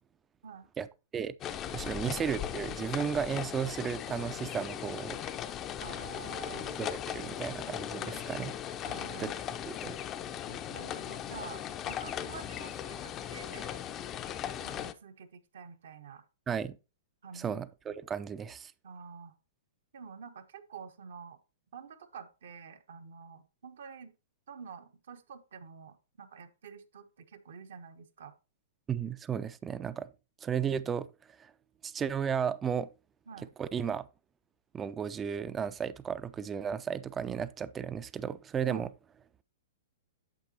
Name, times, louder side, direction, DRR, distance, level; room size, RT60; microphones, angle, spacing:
voice 1, 0.8-1.3 1.7-5.2 6.7-8.5 9.2-9.3 9.7-9.9 16.5-16.8 17.3-18.7 28.9-30.1 30.4-31.1 31.4-31.5 31.8-32.9 33.6-34.1 34.7-38.9, right 7 dB, 20° right, 0.5 m, -34 dB
sound 1, 1.4-14.9, left 10 dB, 30° left, 0.6 m, -38 dB
voice 2, 5.8-6.7 8.0-8.4 8.8-9.3 10.5-13.7 14.6-16.2 17.2-17.6 18.8-19.3 19.9-21.4 21.7-24.1 24.5-28.4 33.3-33.5 38.7-38.9, right 6 dB, 65° right, 1.1 m, -48 dB
9.0 x 7.3 x 2.8 m
figure-of-eight pair, 110°, 0 cm